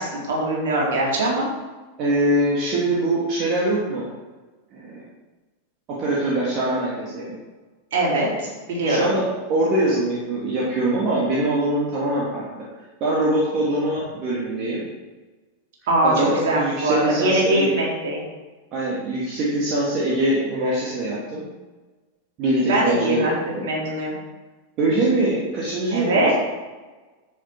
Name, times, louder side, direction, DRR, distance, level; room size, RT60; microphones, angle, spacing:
voice 1, 0.0-1.5 7.9-9.1 15.9-18.2 22.7-23.3 23.6-24.1 25.9-26.3, right 1 dB, 55° right, -4 dB, 4.0 m, -22 dB
voice 2, 2.0-4.0 4.7-5.0 5.9-7.3 8.8-9.2 9.5-12.4 13.0-14.8 16.0-17.7 18.7-21.5 22.4-23.3 23.5-23.7 24.8-26.3, right 1 dB, 40° right, -6 dB, 2.6 m, -23 dB
10.0 x 8.9 x 4.7 m, 1.2 s
figure-of-eight pair, 90°, 0 cm